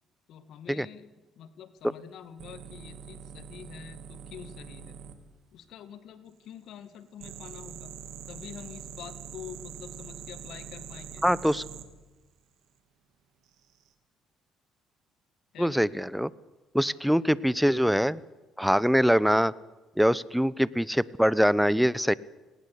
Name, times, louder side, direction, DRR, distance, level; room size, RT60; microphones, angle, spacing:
voice 1, 0.3-5.0 5.5-7.9 8.3-11.2 15.5-16.0 16.9-17.3, left 8 dB, 70° left, 12 dB, 1.9 m, -46 dB
sound 1, 2.4-5.2 7.2-11.9 13.5-13.9, right 8 dB, 75° right, 2.6 m, -44 dB
voice 2, 11.2-11.6 15.6-16.3 16.7-18.2 18.6-19.5 20.0-22.1, equal, ahead, 20 dB, 0.8 m, -23 dB
19.5 x 18.5 x 8.2 m, 1.2 s
supercardioid pair, 80°, 0 cm